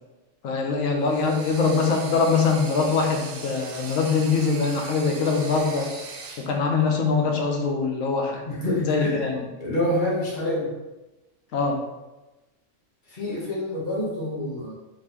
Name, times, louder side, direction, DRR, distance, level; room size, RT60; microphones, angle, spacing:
voice 1, 0.4-5.9 6.4-8.4 8.9-9.5 11.5-11.8, left 4 dB, 85° left, 2 dB, 1.1 m, -23 dB
sound 1, 1.0-6.5, right 4 dB, 65° right, 0.6 m, -39 dB
voice 2, 8.5-9.3 9.6-10.7 13.1-14.7, left 1 dB, 45° left, -6 dB, 0.9 m, -27 dB
4.2 x 2.7 x 2.8 m, 1.0 s
omnidirectional pair, 1.4 m